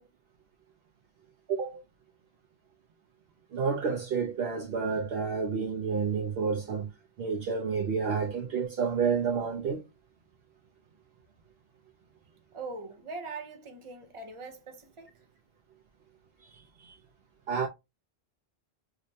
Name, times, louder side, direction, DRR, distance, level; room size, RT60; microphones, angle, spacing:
voice 1, 1.5-1.8 3.5-6.9 7.2-9.8 16.4-17.0 17.5-17.7, right 5 dB, 65° right, 0.8 m, -30 dB
voice 2, 12.5-15.2, right 3 dB, 35° right, 0.7 m, -42 dB
4.9 x 2.1 x 2.7 m
omnidirectional pair, 1.1 m